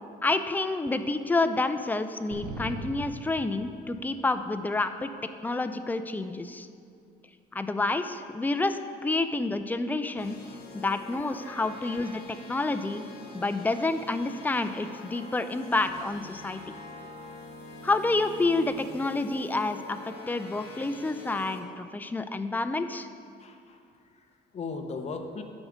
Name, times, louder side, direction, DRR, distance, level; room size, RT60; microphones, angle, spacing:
voice 1, 0.2-5.1 5.4-6.7 7.5-10.4 10.7-12.2 12.5-13.0 13.3-16.6 17.8-23.1, left 2 dB, 10° left, 9 dB, 0.4 m, -29 dB
sound 1, 2.3-4.2, right 2 dB, 70° right, 1.2 m, -39 dB
sound 2, 10.2-21.6, left 3 dB, 70° left, 1.4 m, -45 dB
voice 2, 23.4-25.4, left 4 dB, 40° left, 5 dB, 0.9 m, -38 dB
9.7 x 4.9 x 6.5 m, 2.4 s
cardioid pair, 110°, 17 cm